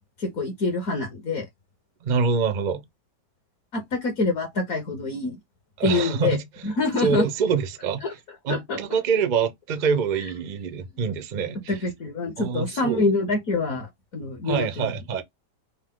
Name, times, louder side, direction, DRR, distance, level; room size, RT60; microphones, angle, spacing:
voice 1, 0.2-1.4 3.7-5.4 5.8-6.4 6.6-7.3 8.0-8.1 8.5-8.8 11.7-15.2, left 3 dB, 55° left, 1.5 m, -26 dB
voice 2, 2.0-2.8 5.8-6.4 7.0-8.2 8.4-11.8 12.4-13.1 14.4-15.2, right 6 dB, 65° right, 0.4 m, -25 dB
5.5 x 2.1 x 3.6 m
omnidirectional pair, 1.8 m